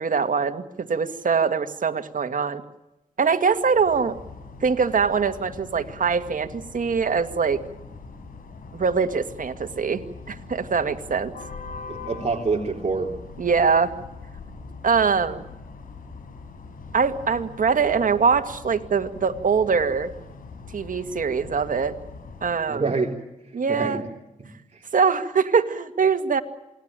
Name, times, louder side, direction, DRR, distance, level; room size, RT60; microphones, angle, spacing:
voice 1, 0.0-2.6 3.2-4.2 4.6-7.6 8.7-11.3 13.4-13.9 14.8-15.4 16.9-20.1 20.7-22.0 22.4-22.9 23.5-24.0 24.9-26.4, right 5 dB, 75° right, 9 dB, 2.1 m, -23 dB
sound 1, 3.4-22.5, left 4 dB, 90° left, 5.5 m, -42 dB
voice 2, 11.9-13.1 22.7-23.2 23.7-24.0 24.4-24.8, right 4 dB, 50° right, 0 dB, 3.7 m, -26 dB
28.0 x 20.0 x 9.1 m, 0.99 s
cardioid pair, 55°, 14 cm